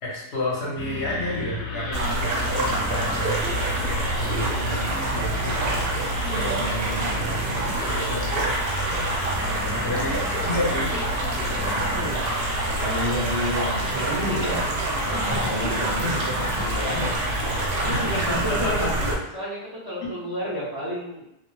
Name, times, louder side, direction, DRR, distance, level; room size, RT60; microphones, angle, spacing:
voice 1, 0.0-8.5 9.8-11.0 18.1-18.9 20.0-20.1, left 1 dB, 65° left, -4 dB, 1.0 m, -31 dB
sound 1, 0.8-18.2, left 2 dB, 90° left, 0.9 m, -34 dB
sound 2, 1.9-19.1, right 2 dB, 60° right, 0.8 m, -26 dB
voice 2, 9.4-10.0 11.6-14.6 15.0-17.1 17.8-19.6 19.8-21.2, equal, 25° right, -9 dB, 0.6 m, -31 dB
2.3 x 2.1 x 3.0 m, 0.82 s
omnidirectional pair, 1.2 m